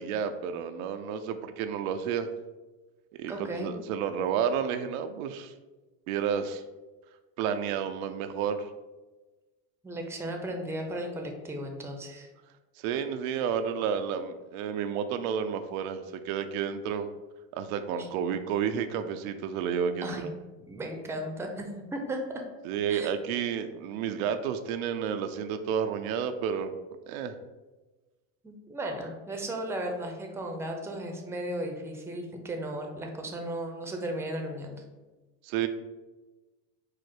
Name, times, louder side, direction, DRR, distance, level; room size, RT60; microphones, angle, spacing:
voice 1, 0.0-2.3 3.2-5.5 6.1-6.6 7.4-8.7 12.8-17.1 17.5-20.3 22.6-26.8 27.1-27.4 35.4-35.7, right 7 dB, 80° right, 8 dB, 0.5 m, -31 dB
voice 2, 3.3-3.8 9.8-12.3 18.0-18.1 20.0-20.3 20.7-22.4 22.9-23.1 28.4-34.8, right 1 dB, 5° right, 3 dB, 0.5 m, -35 dB
4.8 x 2.1 x 4.4 m, 1.2 s
supercardioid pair, 105°, 41 cm